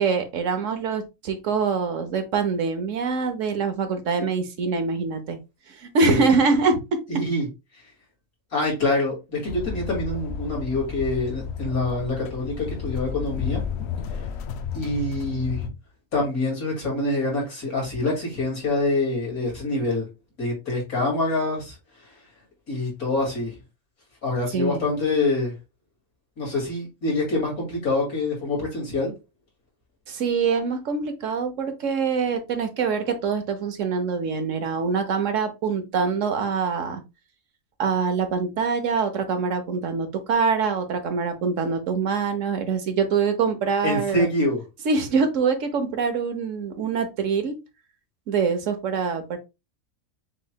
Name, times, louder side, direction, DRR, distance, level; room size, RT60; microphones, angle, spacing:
voice 1, 0.0-5.4 5.7-7.2 24.5-24.8 30.1-37.0 37.8-44.3 44.8-47.6 48.3-49.4, right 5 dB, 65° right, 1.1 m, -24 dB
voice 2, 7.1-7.5 8.5-13.6 14.7-15.7 16.1-20.1 20.4-21.8 22.0-22.1 22.7-23.5 24.2-25.5 26.4-29.1 43.8-44.6, left 2 dB, 85° left, 2.8 m, -25 dB
sound 1, 9.5-15.7, left 7 dB, 65° left, 0.7 m, -32 dB
6.3 x 3.1 x 2.2 m
omnidirectional pair, 1.5 m